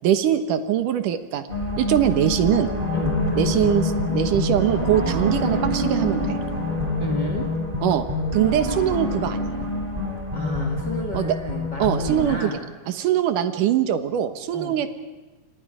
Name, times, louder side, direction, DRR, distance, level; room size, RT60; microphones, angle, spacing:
voice 1, 0.0-1.4 1.8-2.7 3.4-6.4 7.8-8.1 8.3-9.5 11.1-11.3 11.8-12.4 12.9-14.9, right 11 dB, 75° right, 9 dB, 2.8 m, -22 dB
sound 1, 1.5-12.4, left 1 dB, 15° right, 2.2 m, -26 dB
voice 2, 2.9-3.2 7.0-7.5 10.3-12.6 14.5-14.8, left 2 dB, 35° left, 3 dB, 2.2 m, -31 dB
28.5 x 25.0 x 5.0 m, 1.2 s
omnidirectional pair, 3.8 m